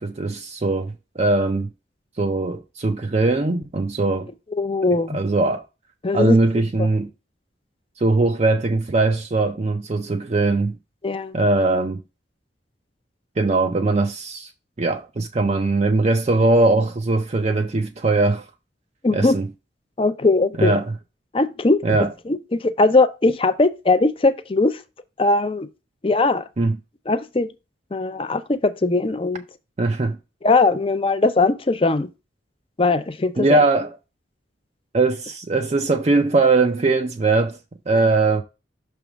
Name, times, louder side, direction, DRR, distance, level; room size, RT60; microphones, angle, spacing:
voice 1, 0.0-1.7 2.2-4.3 5.1-5.6 6.1-7.1 8.0-10.8 11.3-12.0 13.4-14.5 14.8-18.5 19.1-19.5 20.6-20.8 21.8-22.1 26.6-26.8 29.8-30.2 33.4-33.9 34.9-37.6 37.9-38.4, right 3 dB, 35° right, 0.5 m, -20 dB
voice 2, 4.5-5.2 6.0-6.4 6.8-6.9 11.0-11.4 19.0-19.4 20.0-20.8 21.3-21.8 22.3-24.8 25.2-25.7 26.0-26.4 27.1-27.5 27.9-29.4 30.4-32.1 32.8-33.6, left 3 dB, 30° left, 0.5 m, -20 dB
6.1 x 3.5 x 6.0 m
head